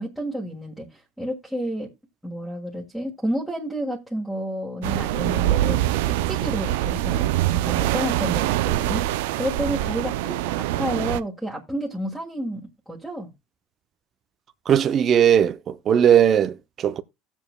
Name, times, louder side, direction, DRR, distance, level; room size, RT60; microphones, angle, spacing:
voice 1, 0.0-1.9 2.2-13.3, right 1 dB, ahead, 1.6 m, -30 dB
sound 1, 4.8-11.2, right 14 dB, 90° right, 0.4 m, -24 dB
voice 2, 14.7-17.0, right 9 dB, 40° right, 0.6 m, -18 dB
17.5 x 7.2 x 2.2 m
supercardioid pair, 125°, 0 cm